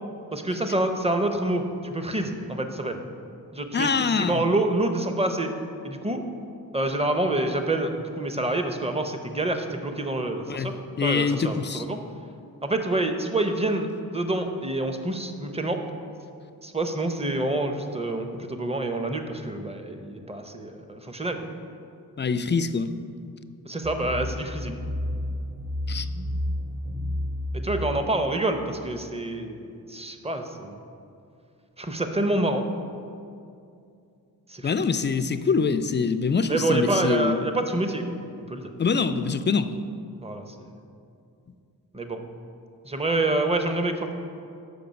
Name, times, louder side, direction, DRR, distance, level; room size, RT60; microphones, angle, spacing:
voice 1, 0.3-3.0 3.5-5.5 5.8-6.2 6.7-10.7 11.0-12.0 12.6-15.8 16.6-21.4 23.7-24.8 27.5-30.8 31.8-32.7 34.5-34.7 36.5-38.1 38.5-38.7 40.2-40.7 41.9-42.2 42.8-44.1, right 2 dB, 15° right, 6 dB, 0.7 m, -27 dB
voice 2, 3.7-4.4 10.5-11.8 22.2-23.0 25.9-26.1 34.6-37.5 38.8-39.7, left 5 dB, 30° left, 11 dB, 0.4 m, -24 dB
sound 1, 23.8-28.0, left 1 dB, 30° right, 1.1 m, -31 dB
6.8 x 5.4 x 5.2 m, 2.5 s
cardioid pair, 55°, 39 cm